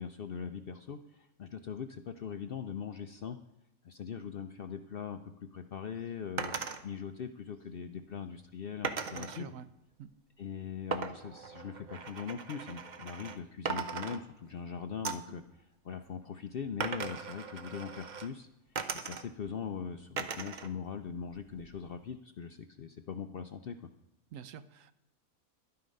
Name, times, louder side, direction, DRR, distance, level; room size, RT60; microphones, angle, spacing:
voice 1, 0.0-3.4 3.8-5.2 5.5-6.5 6.8-9.5 10.4-18.5 18.9-23.8, left 7 dB, 60° left, 8 dB, 0.6 m, -41 dB
sound 1, 6.4-6.8 8.8-9.4 10.9-13.4 13.6-14.6 15.0-15.4 16.8-18.3 18.7-19.5 20.2-20.7 21.0-21.8, right 5 dB, 45° right, 0.7 m, -38 dB
voice 2, 9.1-9.7 10.0-10.1 24.3-24.9, right 8 dB, 70° right, 13 dB, 1.0 m, -47 dB
11.5 x 9.6 x 5.3 m, 0.86 s
omnidirectional pair, 1.5 m